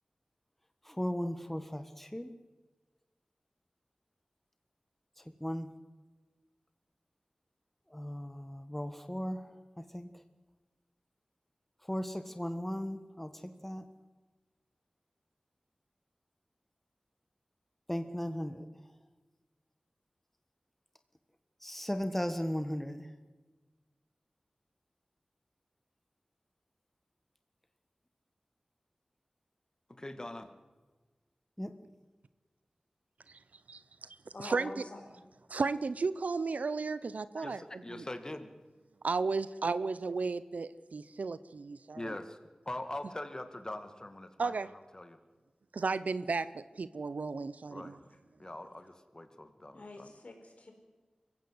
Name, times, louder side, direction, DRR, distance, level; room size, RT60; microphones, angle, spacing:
voice 1, 0.8-2.3 5.2-5.7 7.9-9.5 9.8-10.1 11.9-13.8 17.9-18.7 21.6-23.1 31.6-31.7, equal, 10° left, 1.4 m, -36 dB
voice 2, 30.0-30.5 37.3-38.5 42.0-42.4 42.7-44.5 44.9-45.2 47.7-48.0 48.4-50.1, left 1 dB, 30° left, 2.1 m, -42 dB
voice 3, 34.3-35.2 48.0-48.1 49.7-50.7, left 2 dB, 65° left, 4.5 m, -46 dB
voice 4, 35.5-38.0 39.0-42.2 44.4-44.7 45.7-48.0, right 4 dB, 85° right, 0.8 m, -34 dB
24.5 x 15.5 x 8.1 m
wide cardioid pair, 60°, 2 cm